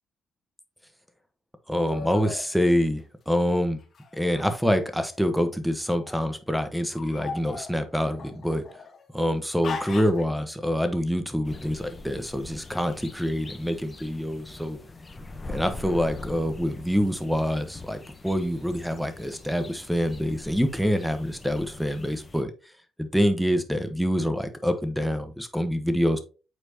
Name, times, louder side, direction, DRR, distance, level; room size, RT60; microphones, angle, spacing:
voice 1, 1.7-3.8 4.1-8.6 9.1-14.8 15.5-22.5 23.0-26.2, equal, ahead, 9 dB, 1.1 m, -26 dB
sound 1, 1.9-2.4 3.9-5.1 5.9-6.3 6.9-9.0 9.6-10.2, left 5 dB, 50° left, 1.7 m, -38 dB
sound 2, 11.4-22.4, left 2 dB, 25° left, 0.9 m, -42 dB
8.0 x 4.4 x 2.8 m, 0.33 s
cardioid pair, 90°, 0 cm